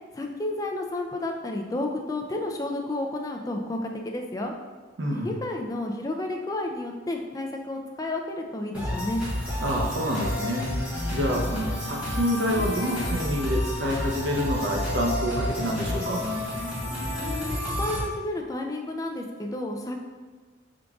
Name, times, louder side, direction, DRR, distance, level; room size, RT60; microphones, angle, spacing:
voice 1, 0.1-4.5 5.1-9.2 17.2-20.0, left 2 dB, 20° left, 2 dB, 0.3 m, -31 dB
voice 2, 5.0-5.4 9.6-16.2, equal, 75° right, -1 dB, 0.7 m, -28 dB
sound 1, 8.7-18.0, left 1 dB, 5° right, 1.1 m, -30 dB
4.8 x 3.8 x 2.3 m, 1.4 s
head